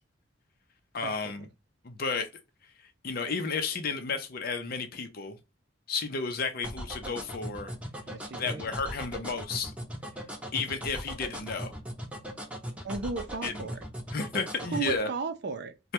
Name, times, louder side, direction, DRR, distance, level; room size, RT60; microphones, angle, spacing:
voice 1, 0.9-1.5 1.8-2.3 2.8-5.4 5.9-7.7 8.4-9.7 10.5-11.7 13.4-13.7 14.1-15.1, left 4 dB, 50° left, 0.6 m, -32 dB
sound 1, 6.6-15.0, equal, 5° right, 0.7 m, -38 dB
voice 2, 8.1-8.7 12.8-13.8 14.7-15.7, right 4 dB, 60° right, 0.5 m, -35 dB
3.2 x 2.2 x 2.9 m
head